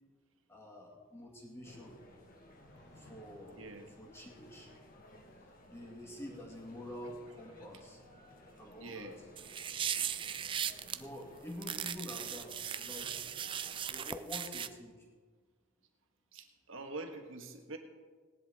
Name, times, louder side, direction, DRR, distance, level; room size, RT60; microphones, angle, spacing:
voice 1, 0.5-2.0 3.0-3.6 4.0-4.7 5.7-8.0 8.6-9.2 10.9-13.2 13.9-15.1, left 1 dB, 15° left, -1 dB, 2.1 m, -47 dB
sound 1, 1.2-1.3 2.5-3.8 4.3-5.0 6.9-7.0, left 1 dB, 60° left, 1.9 m, -61 dB
sound 2, 1.6-14.0, left 1 dB, 45° left, 1.4 m, -57 dB
voice 2, 3.6-3.9 8.8-9.2 16.3-17.8, right 3 dB, 75° right, 4 dB, 1.4 m, -45 dB
sound 3, 9.4-11.0 11.6-14.7, right 9 dB, 25° right, 0.3 m, -38 dB
18.0 x 10.5 x 3.6 m, 1.5 s
head